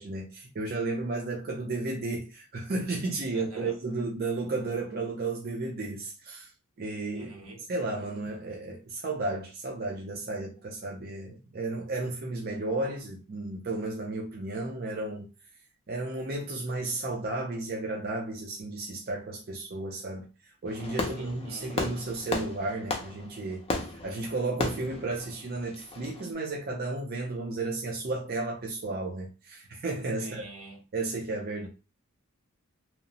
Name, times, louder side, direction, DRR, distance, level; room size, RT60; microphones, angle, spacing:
voice 1, 0.0-6.5 6.8-7.3 7.6-15.3 15.9-23.7 24.0-30.5 30.9-31.7, right 2 dB, 45° right, 0.5 m, -33 dB
voice 2, 3.3-3.7 7.1-7.6 21.2-21.8 30.2-30.8, right 2 dB, 80° right, 0.9 m, -46 dB
Fireworks, 20.7-26.3, left 2 dB, 25° left, 0.4 m, -35 dB
2.9 x 2.0 x 2.6 m
head